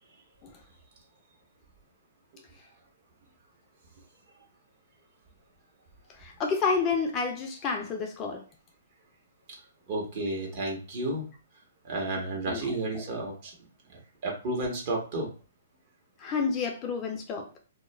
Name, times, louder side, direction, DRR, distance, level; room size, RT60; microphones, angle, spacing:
voice 1, 6.2-8.4 12.5-12.7 16.2-17.5, left 5 dB, 25° left, 0.4 m, -29 dB
voice 2, 9.9-11.3 11.8-13.5 13.9-15.3, right 2 dB, 45° right, 0.9 m, -32 dB
2.3 x 2.0 x 3.0 m
hypercardioid pair, 135°, 0 cm